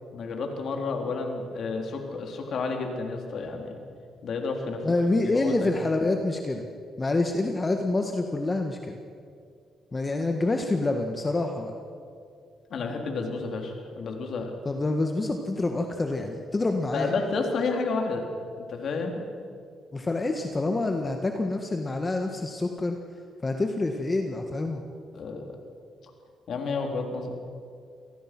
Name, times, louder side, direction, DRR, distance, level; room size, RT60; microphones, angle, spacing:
voice 1, 0.1-3.8 4.2-4.8 5.2-5.7 12.7-14.5 16.9-18.2 18.6-19.2 25.1-25.4 26.5-27.3, left 4 dB, 60° left, 3 dB, 3.7 m, -30 dB
voice 2, 4.8-6.6 7.0-9.0 9.9-11.7 14.6-17.1 19.9-23.0 23.4-24.8, left 2 dB, 25° left, 4 dB, 1.7 m, -27 dB
27.5 x 18.5 x 6.2 m, 2.3 s
cardioid pair, 90°, 0 cm